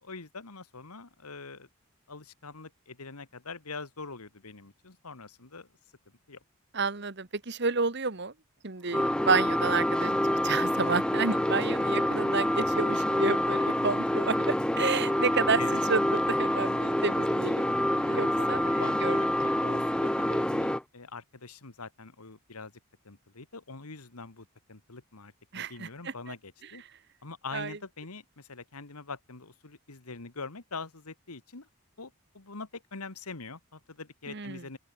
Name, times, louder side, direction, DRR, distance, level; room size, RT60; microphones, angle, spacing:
voice 1, 0.0-1.7 2.1-5.7 6.3-6.4 11.1-11.2 15.6-15.8 18.1-22.7 23.0-26.8 27.2-31.7 32.0-34.8, left 4 dB, 90° left, 1.9 m, -44 dB
voice 2, 6.7-8.3 8.6-10.2 10.4-19.2 25.5-26.1 27.5-27.7 34.3-34.6, right 4 dB, 50° right, 1.3 m, -30 dB
sound 1, 8.9-20.8, left 1 dB, 5° left, 0.5 m, -27 dB
open air
head